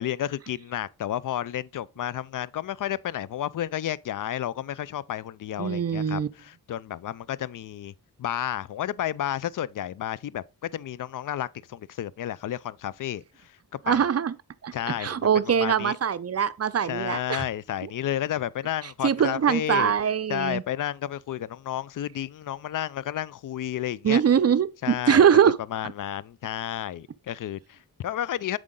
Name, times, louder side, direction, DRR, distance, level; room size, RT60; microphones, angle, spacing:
voice 1, 0.0-7.9 8.2-13.2 13.9-14.0 14.7-16.0 16.8-19.9 20.3-24.2 24.8-25.3 25.7-28.6, left 11 dB, 60° left, 0.5 m, -31 dB
voice 2, 5.6-6.3 13.9-14.3 14.6-14.7 15.0-17.4 19.0-20.6 24.0-25.6, right 8 dB, 40° right, 0.6 m, -22 dB
7.5 x 5.0 x 3.7 m
cardioid pair, 60°, 37 cm